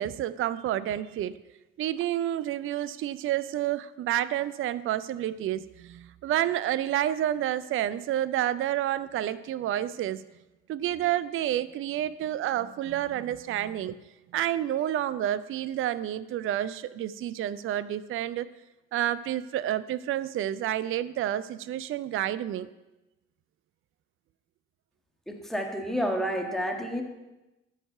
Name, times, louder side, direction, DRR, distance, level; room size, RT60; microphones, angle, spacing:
voice 1, 0.0-1.4 1.8-10.2 10.7-14.0 14.3-18.5 18.9-22.7, right 12 dB, 40° right, 16 dB, 0.4 m, -29 dB
voice 2, 25.3-27.0, equal, ahead, 3 dB, 1.6 m, -30 dB
13.0 x 4.8 x 5.6 m, 1.0 s
figure-of-eight pair, 45°, 32 cm